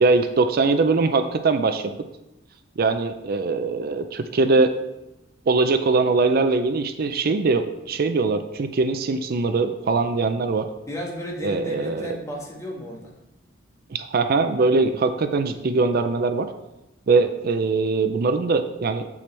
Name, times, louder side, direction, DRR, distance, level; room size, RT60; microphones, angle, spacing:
voice 1, 0.0-1.9 2.8-4.7 5.5-10.7 11.4-12.2 13.9-16.5 17.1-19.1, right 3 dB, 50° right, 8 dB, 0.4 m, -21 dB
voice 2, 10.9-13.2, equal, 15° left, -2 dB, 1.5 m, -33 dB
7.6 x 7.0 x 3.3 m, 0.92 s
head